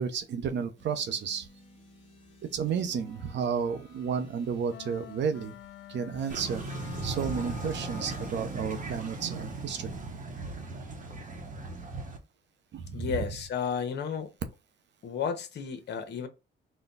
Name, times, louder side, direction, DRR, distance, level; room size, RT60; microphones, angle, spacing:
voice 1, 0.0-1.5 2.5-5.5 5.9-6.6 7.0-9.9 12.7-13.2, right 6 dB, 65° right, 0.8 m, -32 dB
sound 1, 0.8-10.9, left 1 dB, 30° left, 1.5 m, -57 dB
sound 2, 4.7-8.5, left 12 dB, 75° left, 0.5 m, -47 dB
sound 3, 6.3-12.2, right 3 dB, 40° right, 1.0 m, -38 dB
voice 2, 12.9-14.3 15.0-16.3, left 7 dB, 60° left, 0.9 m, -32 dB
4.2 x 2.2 x 4.0 m
cardioid pair, 90°, 20 cm